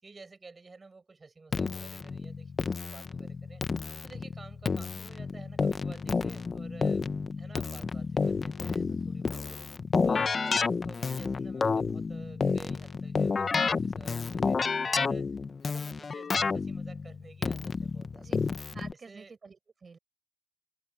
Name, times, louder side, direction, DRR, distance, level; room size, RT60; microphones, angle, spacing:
voice 1, 0.0-3.6 4.0-7.1 7.4-9.6 10.0-15.3 15.6-18.3 18.9-19.4, right 3 dB, 60° right, 6.7 m, -51 dB
Keyboard (musical), 1.5-18.9, left 4 dB, 90° left, 0.7 m, -30 dB
voice 2, 18.7-20.0, right 5 dB, 90° right, 5.0 m, -49 dB
wide cardioid pair, 95°, 0 cm